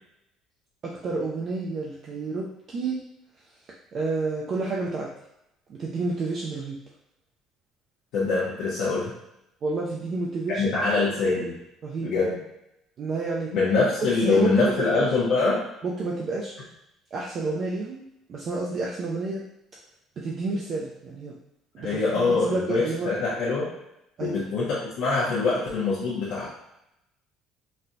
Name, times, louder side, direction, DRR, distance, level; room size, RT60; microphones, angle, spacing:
voice 1, 0.8-3.0 3.9-5.1 5.7-6.8 9.6-10.8 11.8-12.1 13.0-13.5 14.2-15.1 15.8-16.5 17.1-18.0 18.3-19.4 20.2-21.3 21.7-23.1 24.2-24.4, right 3 dB, 40° right, -3 dB, 0.4 m, -29 dB
voice 2, 8.1-9.1 10.5-11.6 12.0-12.4 13.5-15.6 21.8-23.7 24.2-26.5, left 3 dB, 70° left, -7 dB, 0.8 m, -24 dB
4.1 x 2.2 x 2.6 m, 0.85 s
cardioid pair, 150°, 0 cm